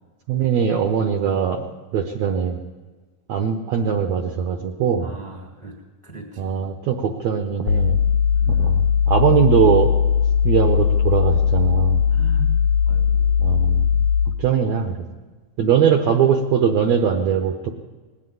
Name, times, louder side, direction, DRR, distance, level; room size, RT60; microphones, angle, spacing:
voice 1, 0.3-1.6 1.9-2.6 3.3-5.1 6.4-8.0 8.5-9.9 10.4-12.0 13.4-13.9 14.4-15.0 15.6-17.7, right 7 dB, 75° right, 5 dB, 1.6 m, -21 dB
voice 2, 5.0-5.7 6.0-6.7 8.3-8.9 12.1-12.6 12.8-13.5, right 2 dB, 25° left, 2 dB, 0.6 m, -39 dB
sound 1, 7.7-14.5, left 7 dB, 70° left, 2.3 m, -19 dB
19.0 x 8.2 x 9.3 m, 1.4 s
omnidirectional pair, 4.0 m